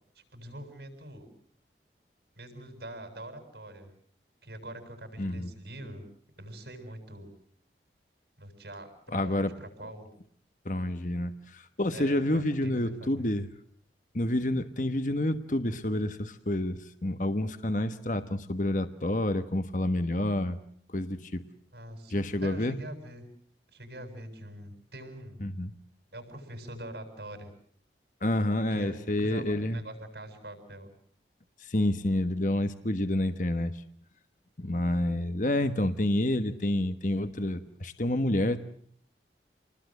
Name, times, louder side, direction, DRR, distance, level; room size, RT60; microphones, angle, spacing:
voice 1, 0.1-1.3 2.4-3.9 4.4-6.1 6.4-7.3 8.4-10.1 11.9-13.3 21.7-23.2 23.7-25.4 26.1-27.5 28.7-30.9, right 1 dB, 70° right, 6 dB, 7.9 m, -44 dB
voice 2, 5.2-5.5 9.1-9.6 10.6-13.5 14.1-20.6 20.9-21.4 22.1-22.8 25.4-25.7 28.2-29.8 31.6-33.8 34.6-38.6, left 1 dB, 45° left, 9 dB, 1.3 m, -29 dB
29.5 x 20.5 x 7.9 m, 0.62 s
head